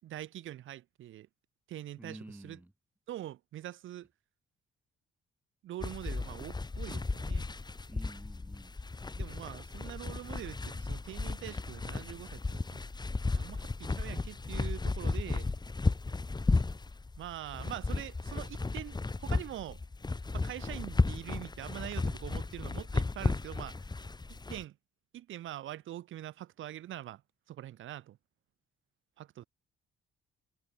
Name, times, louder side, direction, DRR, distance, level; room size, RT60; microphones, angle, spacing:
voice 1, 0.0-1.3 1.7-2.6 3.1-4.1 5.6-7.5 9.2-12.8 13.3-15.5 17.2-19.8 20.3-23.8 24.3-24.8 25.1-27.2 27.5-28.2 29.2-29.4, right 13 dB, 80° right, 4.8 m, -44 dB
voice 2, 2.0-2.7 7.9-8.7, right 1 dB, 10° right, 3.7 m, -49 dB
sound 1, 5.8-24.6, left 3 dB, 20° left, 2.9 m, -34 dB
cardioid pair, 90°, 20 cm